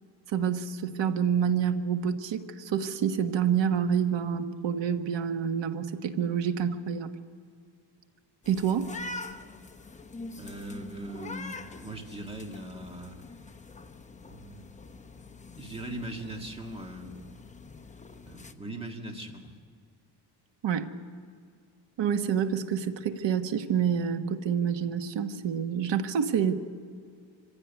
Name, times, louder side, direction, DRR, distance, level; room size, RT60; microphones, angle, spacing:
voice 1, 0.3-7.1 8.5-8.9 20.6-20.9 22.0-26.5, right 7 dB, 65° right, 8 dB, 1.4 m, -28 dB
sound 1, 8.4-18.5, left 3 dB, 15° left, 0.8 m, -45 dB
voice 2, 10.4-13.2 14.3-14.7 15.6-17.2 18.3-19.5, right 1 dB, 10° right, 2 dB, 2.0 m, -40 dB
24.5 x 15.5 x 9.2 m, 2.2 s
cardioid pair, 165°, 46 cm